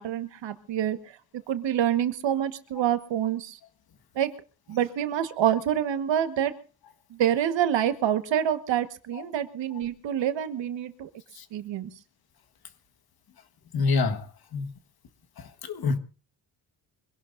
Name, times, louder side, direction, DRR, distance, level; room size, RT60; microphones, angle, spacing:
voice 1, 0.0-3.6 4.1-4.3 4.7-6.5 7.1-11.1 11.5-11.9, right 10 dB, 70° right, 1.5 m, -27 dB
voice 2, 13.7-14.2 14.5-14.7 15.4-16.0, left 4 dB, 55° left, 1.6 m, -26 dB
25.0 x 17.0 x 2.6 m
cardioid pair, 120°, 45 cm